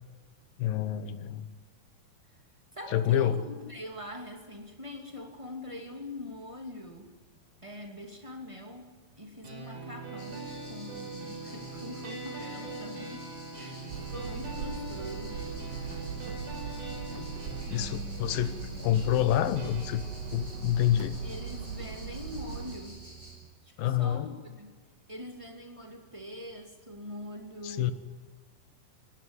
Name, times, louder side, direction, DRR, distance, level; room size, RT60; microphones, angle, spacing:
voice 1, 0.6-1.5 2.9-3.4 17.2-17.3 17.7-20.0 20.3-21.2 23.8-24.3 27.6-27.9, left 11 dB, 80° left, 13 dB, 2.7 m, -27 dB
voice 2, 2.7-7.1 7.6-13.3 13.6-15.4 21.2-23.0 23.6-24.7 25.1-27.9, left 1 dB, 10° right, 3 dB, 1.9 m, -43 dB
sound 1, 9.4-23.4, right 2 dB, 70° right, 7.7 m, -43 dB
sound 2, 10.2-23.4, equal, 10° left, 6.6 m, -51 dB
Hammer, 13.9-22.8, right 6 dB, 85° right, 2.9 m, -39 dB
19.0 x 16.5 x 9.8 m, 1.4 s
omnidirectional pair, 4.1 m